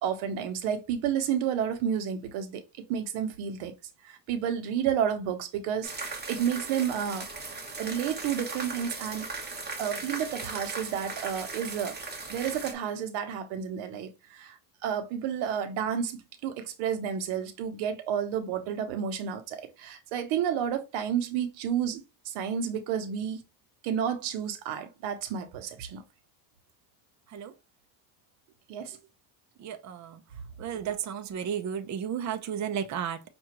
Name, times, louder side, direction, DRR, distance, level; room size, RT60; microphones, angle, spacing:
voice 1, 0.0-3.7 4.0-7.3 7.8-9.3 9.8-12.0 12.3-23.4 23.8-26.0 28.7-29.0, right 8 dB, 85° right, 1.0 m, -31 dB
sound 1, 5.8-12.7, right 3 dB, 20° right, 1.1 m, -38 dB
voice 2, 29.6-30.2 30.6-33.2, right 8 dB, 40° right, 0.7 m, -33 dB
5.9 x 2.6 x 2.9 m
cardioid pair, 110°, 46 cm